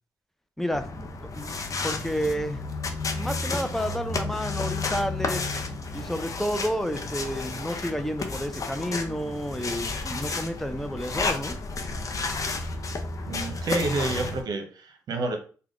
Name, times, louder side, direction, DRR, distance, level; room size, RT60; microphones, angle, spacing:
voice 1, 0.6-1.1 1.4-1.6 1.8-2.6 3.1-5.4 5.9-11.6, equal, 5° left, 8 dB, 0.6 m, -30 dB
sound 1, 0.7-14.4, left 3 dB, 50° left, 0.7 m, -32 dB
voice 2, 13.2-15.4, right 2 dB, 70° right, 4 dB, 0.8 m, -29 dB
3.4 x 2.3 x 3.7 m, 0.38 s
supercardioid pair, 55°, 7 cm